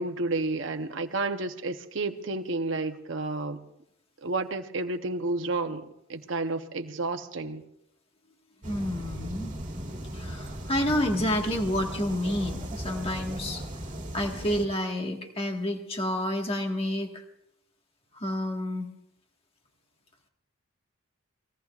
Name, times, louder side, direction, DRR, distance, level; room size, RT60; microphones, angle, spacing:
voice 1, 0.0-3.6 4.2-7.6, right 2 dB, 60° right, 0.8 m, -31 dB
voice 2, 8.6-9.6 10.0-13.6 14.1-17.2 18.1-18.9, left 1 dB, 25° left, 1.5 m, -29 dB
sound 1, 8.6-14.7, right 1 dB, 35° right, 2.4 m, -37 dB
28.5 x 20.0 x 2.4 m
head